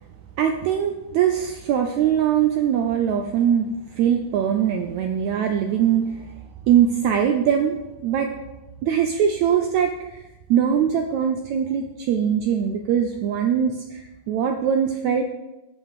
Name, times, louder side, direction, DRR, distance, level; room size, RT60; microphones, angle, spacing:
voice 1, 0.4-6.3 6.7-7.8 8.0-8.3 8.8-10.2 10.5-15.2, right 8 dB, 80° right, 4 dB, 1.6 m, -22 dB
9.2 x 5.6 x 6.5 m, 1.0 s
omnidirectional pair, 3.9 m